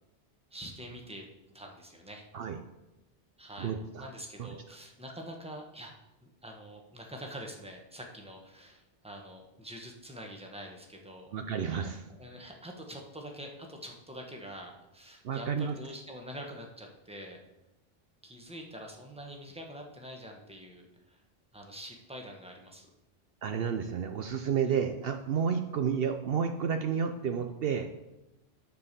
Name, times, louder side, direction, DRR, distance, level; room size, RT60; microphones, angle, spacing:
voice 1, 0.5-2.2 3.4-5.9 6.2-11.3 12.1-17.4 18.2-21.2 21.5-22.9, equal, 5° right, 1 dB, 1.2 m, -45 dB
voice 2, 3.6-4.1 4.4-4.5 11.3-12.0 15.2-15.7 23.4-27.9, right 7 dB, 65° right, 7 dB, 0.8 m, -31 dB
10.5 x 4.7 x 6.7 m, 0.96 s
omnidirectional pair, 1.1 m